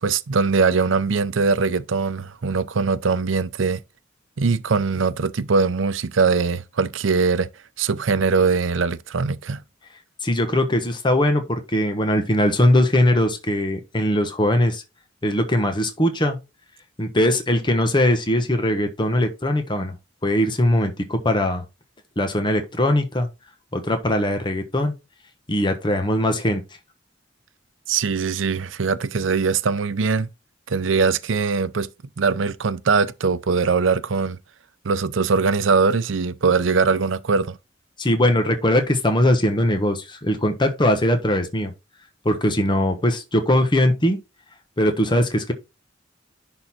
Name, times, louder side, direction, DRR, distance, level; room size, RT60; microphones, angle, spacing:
voice 1, 0.0-3.8 4.4-7.5 7.8-9.6 27.9-30.3 30.7-31.9 32.2-34.4 34.8-37.6, right 4 dB, 85° right, 0.6 m, -21 dB
voice 2, 10.2-14.8 15.2-16.4 17.0-19.9 20.2-21.6 22.2-23.3 23.7-24.9 25.5-26.6 38.0-41.7 42.2-44.2 44.8-45.5, left 1 dB, 25° left, 1.2 m, -20 dB
10.5 x 3.9 x 4.3 m
head